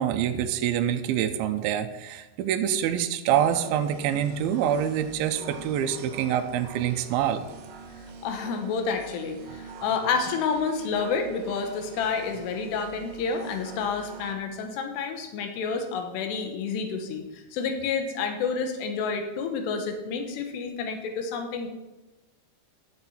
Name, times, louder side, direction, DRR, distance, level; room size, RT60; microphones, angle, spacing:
voice 1, 0.0-7.4, right 10 dB, 85° right, 7 dB, 2.2 m, -26 dB
sound 1, 3.3-14.4, right 4 dB, 70° right, 2.7 m, -44 dB
voice 2, 8.2-21.7, left 5 dB, 80° left, 5 dB, 3.1 m, -29 dB
12.5 x 7.0 x 4.3 m, 1.1 s
omnidirectional pair, 5.1 m